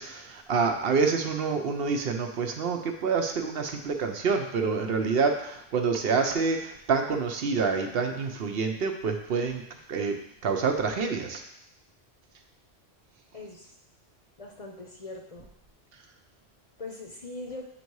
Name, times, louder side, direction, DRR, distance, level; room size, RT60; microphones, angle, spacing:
voice 1, 0.0-9.6 9.9-11.4, right 5 dB, 70° right, 4 dB, 0.9 m, -27 dB
voice 2, 13.3-13.7 14.4-15.5 16.8-17.7, left 2 dB, 40° left, 0 dB, 0.7 m, -41 dB
7.8 x 2.7 x 4.6 m, 0.77 s
omnidirectional pair, 1.1 m